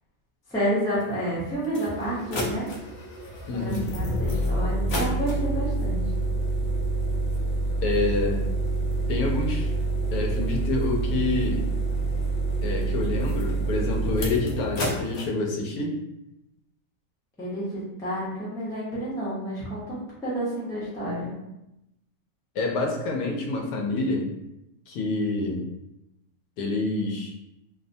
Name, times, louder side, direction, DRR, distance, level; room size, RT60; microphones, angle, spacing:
voice 1, 0.5-2.7 3.5-6.0 17.4-21.4, equal, 5° left, -8 dB, 0.5 m, -30 dB
sound 1, 1.0-1.1 1.6-15.3, right 2 dB, 65° left, 0.5 m, -27 dB
voice 2, 3.5-3.9 7.8-8.5 9.1-9.7 10.1-11.7 12.6-16.0 22.5-24.3 24.9-25.7 26.6-27.3, left 2 dB, 90° left, 1 dB, 1.1 m, -27 dB
2.8 x 2.1 x 2.6 m, 0.89 s
omnidirectional pair, 1.6 m